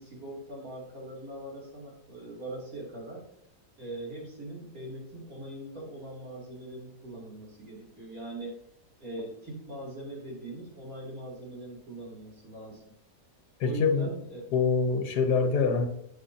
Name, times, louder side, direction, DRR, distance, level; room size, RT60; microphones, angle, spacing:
voice 1, 0.0-3.2 3.8-8.5 9.0-12.8 13.6-14.4, right 1 dB, 60° right, -4 dB, 3.2 m, -41 dB
voice 2, 13.6-14.1 14.5-15.9, left 5 dB, 80° left, 7 dB, 1.6 m, -25 dB
9.1 x 8.9 x 2.8 m, 0.72 s
omnidirectional pair, 1.7 m